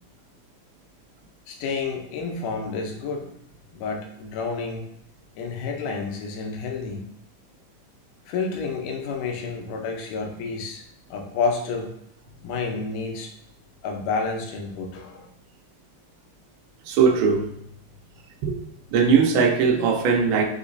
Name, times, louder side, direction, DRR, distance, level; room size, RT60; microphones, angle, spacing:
voice 1, 1.5-3.3 3.7-4.9 5.4-7.1 8.3-10.8 11.1-11.9 12.4-13.3 13.8-15.3, left 4 dB, 75° left, 2 dB, 2.1 m, -29 dB
voice 2, 16.9-17.4 18.4-18.5 18.9-20.4, right 6 dB, 85° right, 2 dB, 2.6 m, -19 dB
6.5 x 3.0 x 2.6 m, 0.75 s
omnidirectional pair, 4.3 m